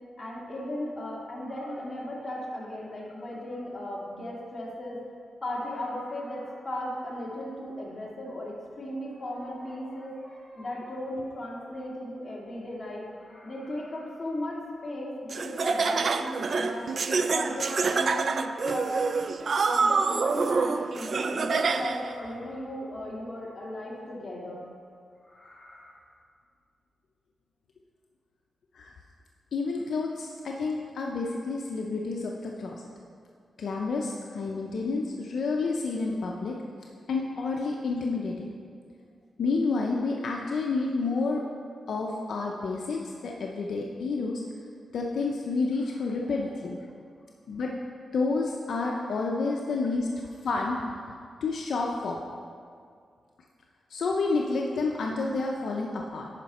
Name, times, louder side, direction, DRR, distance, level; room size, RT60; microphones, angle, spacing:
voice 1, 0.2-5.0 5.4-24.6 25.2-26.0 48.9-49.5, left 1 dB, 30° left, -5 dB, 2.3 m, -36 dB
Laughter, 15.3-22.1, right 4 dB, 55° right, 0.3 m, -27 dB
voice 2, 29.5-32.8 33.6-36.6 37.1-38.5 39.4-41.4 41.9-44.4 44.9-46.8 47.5-47.8 48.1-50.1 50.4-50.8 51.4-52.2 53.9-56.3, left 3 dB, 75° left, 0 dB, 0.6 m, -29 dB
10.5 x 5.2 x 4.2 m, 2.2 s
cardioid pair, 90°, 0 cm